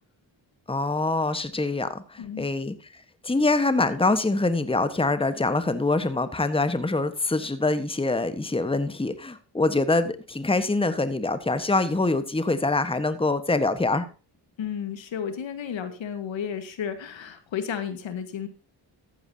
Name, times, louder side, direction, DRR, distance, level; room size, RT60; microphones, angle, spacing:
voice 1, 0.7-14.1, left 2 dB, 10° left, 1.3 m, -25 dB
voice 2, 14.6-18.5, left 8 dB, 70° left, 1.8 m, -32 dB
14.0 x 9.5 x 2.8 m
cardioid pair, 60°, 47 cm